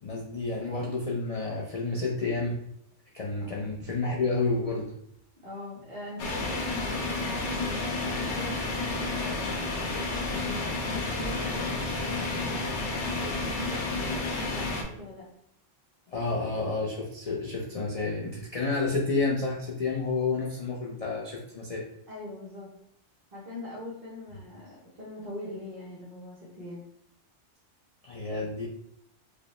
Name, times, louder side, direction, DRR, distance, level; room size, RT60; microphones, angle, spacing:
voice 1, 0.0-2.6 3.1-4.9 16.1-21.8 28.0-28.7, left 3 dB, 50° left, -3 dB, 0.4 m, -30 dB
voice 2, 5.4-12.6 13.2-15.2 22.1-22.7 23.3-26.8, left 1 dB, 50° right, -10 dB, 1.2 m, -42 dB
sound 1, 6.2-14.8, left 3 dB, 70° left, 0.9 m, -31 dB
4.8 x 2.1 x 3.0 m, 0.71 s
omnidirectional pair, 1.3 m